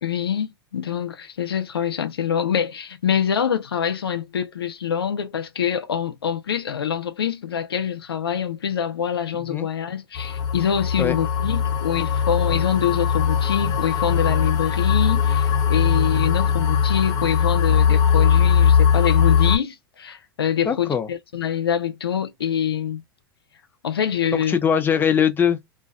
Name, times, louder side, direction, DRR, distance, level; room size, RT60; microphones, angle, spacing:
voice 1, 0.0-23.0 23.8-24.6, left 8 dB, 90° left, 0.5 m, -25 dB
sound 1, 10.2-19.6, left 7 dB, 35° left, 1.0 m, -20 dB
voice 2, 20.6-21.1 24.3-25.6, left 7 dB, 15° left, 0.5 m, -21 dB
2.4 x 2.2 x 2.3 m
hypercardioid pair, 100°, 12 cm